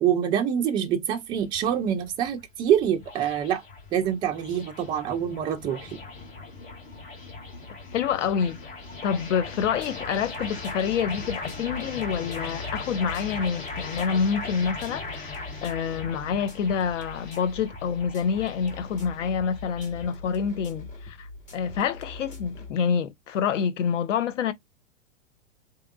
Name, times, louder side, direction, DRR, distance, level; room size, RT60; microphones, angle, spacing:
voice 1, 0.0-3.6 3.9-6.0, right 9 dB, 15° right, 0.3 m, -25 dB
sound 1, 1.3-20.1, left 3 dB, 55° left, 2.2 m, -39 dB
voice 2, 7.9-8.7 9.0-21.3 21.5-24.5, left 7 dB, 70° left, 0.7 m, -27 dB
sound 2, 9.4-22.7, left 2 dB, 20° left, 1.2 m, -43 dB
3.4 x 2.9 x 2.3 m
hypercardioid pair, 110°, 38 cm